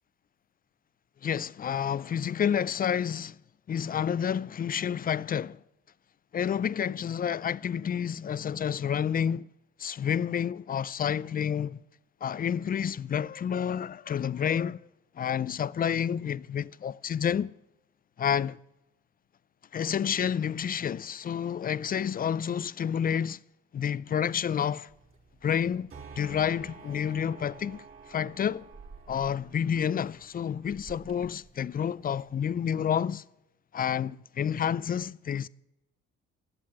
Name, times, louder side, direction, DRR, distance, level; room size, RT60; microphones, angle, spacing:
voice 1, 1.2-3.4 3.7-5.6 6.3-9.5 9.8-11.8 12.2-14.8 15.2-17.5 18.2-18.6 19.7-23.4 23.7-24.9 25.4-28.7 29.1-33.2 33.7-35.5, left 8 dB, 30° left, 0.4 m, -29 dB
sound 1, 24.9-32.9, right 5 dB, 45° right, 3.1 m, -51 dB
12.0 x 7.5 x 7.7 m
supercardioid pair, 60°, 30 cm